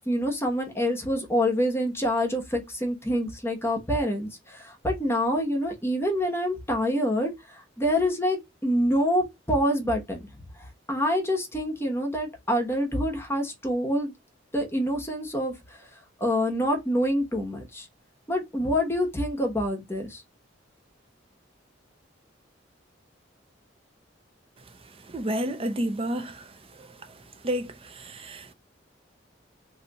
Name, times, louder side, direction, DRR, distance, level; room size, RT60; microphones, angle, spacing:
voice 1, 0.1-7.3 7.8-10.2 10.9-14.1 14.5-15.5 16.2-17.8 18.3-20.2, equal, 15° left, 1.0 m, -26 dB
voice 2, 25.1-26.4 27.4-28.5, right 1 dB, 30° right, 0.5 m, -30 dB
2.8 x 2.4 x 4.0 m
head